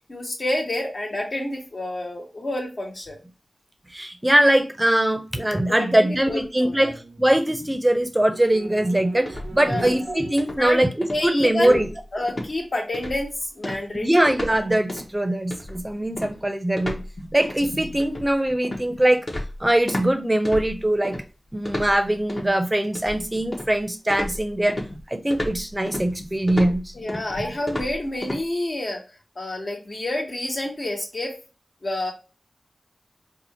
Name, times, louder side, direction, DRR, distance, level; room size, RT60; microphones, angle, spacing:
voice 1, 0.1-3.2 5.9-6.9 9.6-9.9 10.6-10.8 11.1-11.8 12.1-13.3 13.6-14.1 26.9-29.0 29.3-31.3 31.8-32.1, left 1 dB, 55° left, -1 dB, 1.3 m, -28 dB
voice 2, 3.9-11.9 14.0-17.0 17.3-19.2 19.6-21.2 21.5-24.8 25.1-26.9 27.4-27.5, right 1 dB, 15° right, 7 dB, 0.6 m, -22 dB
sound 1, 6.7-11.4, right 5 dB, 70° right, 0.5 m, -41 dB
sound 2, 9.3-10.1 10.4-10.7 11.0-11.3 11.6-12.0 12.3-12.5 12.9-13.3 13.6-14.6 14.9-15.1 15.5-20.1 20.5-21.2 21.7-22.5 23.0-23.8 24.1-28.4, left 1 dB, 35° left, 0.8 m, -32 dB
4.2 x 2.4 x 2.9 m, 0.32 s
wide cardioid pair, 75°, 0 cm